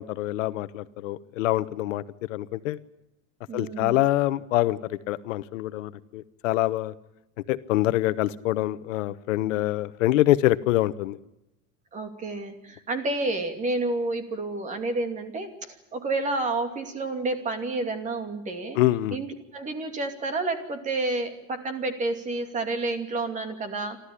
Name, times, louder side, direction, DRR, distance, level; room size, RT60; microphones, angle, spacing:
voice 1, 0.0-2.0 2.3-2.8 3.5-6.9 7.5-11.2 18.7-19.2, left 15 dB, 85° left, 15 dB, 1.2 m, -25 dB
voice 2, 3.5-3.9 11.9-18.8 19.1-19.3 19.5-24.0, right 2 dB, 20° right, 7 dB, 2.6 m, -30 dB
28.5 x 13.5 x 10.0 m, 0.92 s
supercardioid pair, 165°, 37 cm